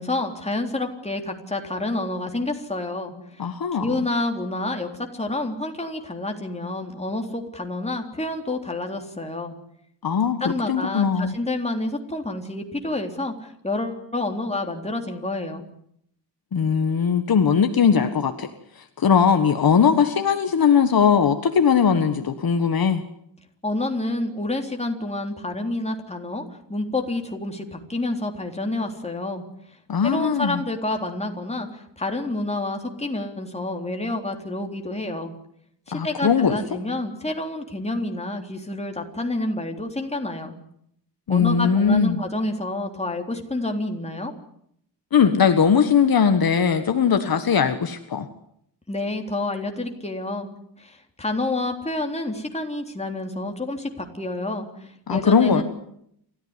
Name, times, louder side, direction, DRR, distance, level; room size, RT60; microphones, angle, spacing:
voice 1, 0.0-3.1 3.8-9.6 10.4-15.6 23.6-26.4 26.7-29.4 30.0-35.3 35.9-40.6 41.3-44.3 48.9-50.5 50.8-55.6, left 2 dB, 15° left, 3 dB, 3.7 m, -28 dB
voice 2, 3.4-4.0 10.0-10.4 10.7-11.3 16.5-18.5 19.0-23.0 29.9-30.6 35.9-36.6 41.3-42.2 45.1-48.3 55.1-55.6, left 6 dB, 55° left, 8 dB, 1.6 m, -19 dB
28.5 x 14.5 x 9.8 m, 0.73 s
wide cardioid pair, 115°, 43 cm